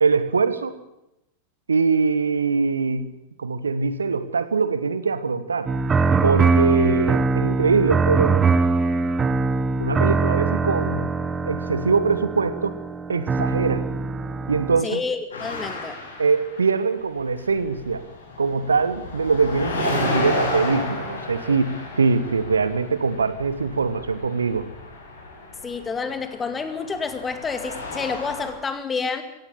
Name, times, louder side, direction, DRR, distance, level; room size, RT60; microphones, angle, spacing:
voice 1, 0.0-0.8 1.7-3.1 3.4-5.7 6.2-8.4 9.8-11.1 11.4-12.7 13.1-13.9 14.5-15.0 16.2-18.1 18.4-24.7, right 4 dB, 75° right, 14 dB, 1.4 m, -22 dB
sound 1, 5.7-14.8, right 4 dB, 20° right, 1.0 m, -22 dB
voice 2, 14.8-16.0 25.6-29.2, left 5 dB, 15° left, 9 dB, 2.3 m, -29 dB
sound 2, 15.3-17.1 17.4-28.5, left 2 dB, 70° left, 6.0 m, -32 dB
16.5 x 16.0 x 9.9 m, 0.88 s
figure-of-eight pair, 90°, 0 cm